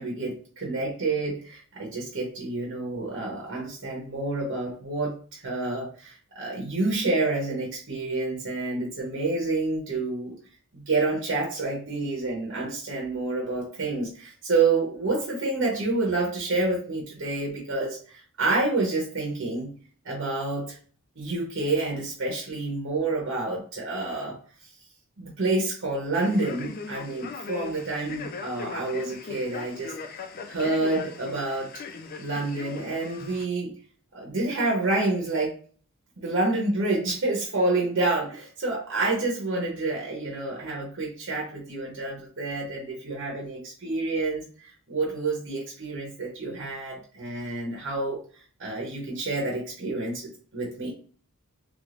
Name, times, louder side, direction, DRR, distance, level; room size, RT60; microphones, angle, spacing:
voice 1, 0.0-10.3 10.7-19.7 20.0-20.8 21.2-24.4 25.2-29.9 30.5-31.7 32.2-33.7 34.1-35.5 36.2-48.2 48.6-50.9, right 2 dB, 55° right, -2 dB, 0.9 m, -28 dB
Male speech man speaking, 26.1-33.4, left 5 dB, 40° left, 0.4 m, -39 dB
3.4 x 3.4 x 2.4 m, 0.43 s
head